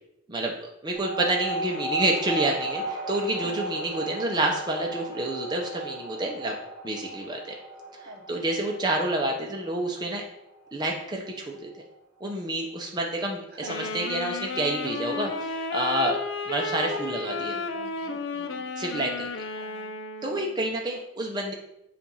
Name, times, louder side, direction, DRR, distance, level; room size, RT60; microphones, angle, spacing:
voice 1, 0.3-6.6 6.8-7.5 8.0-10.3 10.7-11.7 12.2-16.2 16.5-17.6 18.8-19.3 20.2-21.5, right 1 dB, 20° right, 0 dB, 0.6 m, -28 dB
sound 1, 0.9-11.9, right 2 dB, 5° left, 2.0 m, -36 dB
voice 2, 3.4-3.7 8.0-8.5 13.5-13.9 16.8-18.7 19.6-20.0, right 2 dB, 55° right, 4 dB, 0.8 m, -44 dB
Wind instrument woodwind instrument, 13.6-20.6, left 4 dB, 70° left, 0.6 m, -33 dB
7.3 x 2.5 x 5.5 m, 0.83 s
head